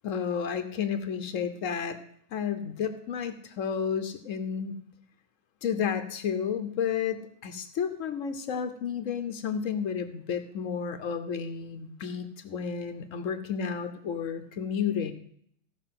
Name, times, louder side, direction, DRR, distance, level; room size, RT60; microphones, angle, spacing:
voice 1, 0.0-2.0 2.3-4.8 5.6-15.1, left 7 dB, 85° left, 9 dB, 1.2 m, -31 dB
15.5 x 5.9 x 5.8 m, 0.67 s
omnidirectional pair, 1.3 m